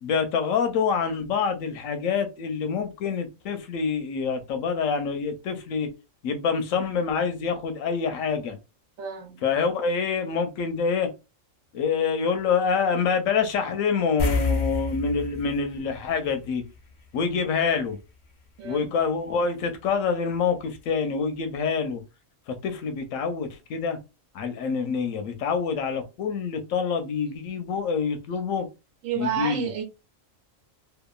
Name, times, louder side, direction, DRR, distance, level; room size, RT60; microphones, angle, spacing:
voice 1, 0.0-5.9 6.2-8.6 9.4-11.1 11.7-16.6 17.1-18.0 18.6-22.0 22.5-24.0 24.3-28.7 29.2-29.7, left 5 dB, 80° left, 1.0 m, -26 dB
voice 2, 9.0-9.4 18.6-18.9 29.0-29.8, right 9 dB, 85° right, 1.1 m, -30 dB
sound 1, 14.2-17.0 17.3-17.5 20.3-20.4 20.8-20.9, left 4 dB, 65° left, 0.4 m, -29 dB
2.8 x 2.2 x 2.3 m
omnidirectional pair, 1.3 m